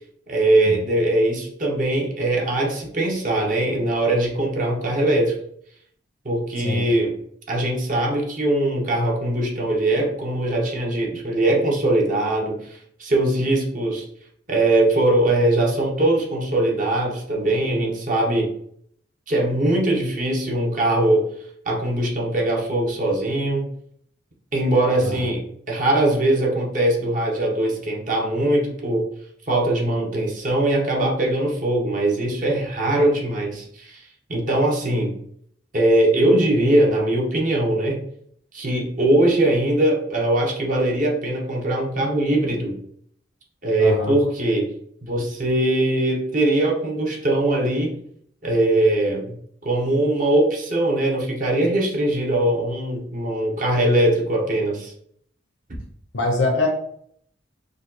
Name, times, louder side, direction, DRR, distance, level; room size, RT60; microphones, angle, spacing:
voice 1, 0.3-5.4 6.2-7.2 7.5-14.1 14.5-18.5 19.3-21.3 21.7-23.7 24.5-29.1 29.5-34.0 34.3-35.1 35.7-38.0 38.5-42.8 43.6-44.7 45.0-48.0 48.4-49.3 49.6-54.9, right 1 dB, 45° right, -2 dB, 0.9 m, -21 dB
voice 2, 43.8-44.2 56.1-56.7, left 2 dB, 80° left, 0 dB, 0.9 m, -23 dB
5.0 x 2.3 x 3.9 m, 0.65 s
head